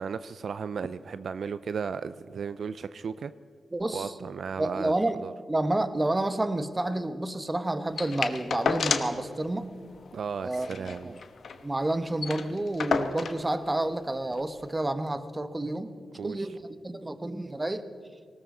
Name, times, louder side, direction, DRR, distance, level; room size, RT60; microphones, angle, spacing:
voice 1, 0.0-3.3 3.9-4.9 5.2-5.3 10.1-11.1 16.1-16.5, right 6 dB, 75° right, 14 dB, 0.4 m, -35 dB
voice 2, 3.7-4.1 4.6-5.2 5.5-9.7 10.4-11.2 11.6-15.9 16.2-17.8, right 1 dB, 25° right, 11 dB, 1.3 m, -30 dB
sound 1, 8.0-9.3 9.6-9.7 9.9-10.1 10.5-11.6 11.9-12.0 12.2-13.4 14.3-14.4, left 5 dB, 70° left, 1.0 m, -30 dB
19.5 x 17.5 x 3.9 m, 2.5 s
supercardioid pair, 45°, 0 cm